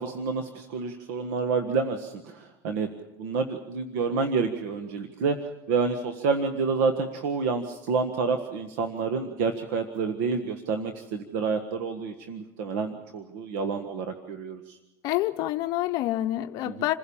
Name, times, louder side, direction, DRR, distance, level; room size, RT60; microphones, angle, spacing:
voice 1, 0.0-2.9 3.2-5.4 5.7-14.8 16.6-16.8, right 5 dB, 85° right, 6 dB, 1.6 m, -28 dB
voice 2, 15.0-16.9, left 15 dB, 55° left, 7 dB, 0.9 m, -27 dB
27.5 x 16.0 x 7.2 m, 0.98 s
cardioid pair, 150°, 8 cm